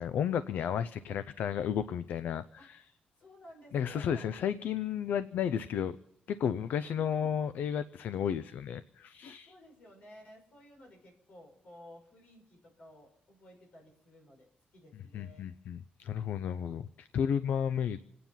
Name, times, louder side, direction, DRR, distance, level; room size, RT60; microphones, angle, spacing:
voice 1, 0.0-2.8 3.7-6.0 6.3-9.5 15.1-18.0, left 8 dB, 75° left, 14 dB, 0.5 m, -33 dB
voice 2, 2.6-4.3 9.4-15.5, equal, 50° left, 0 dB, 6.2 m, -55 dB
27.0 x 9.4 x 5.7 m, 0.83 s
wide cardioid pair, 170°, 3 cm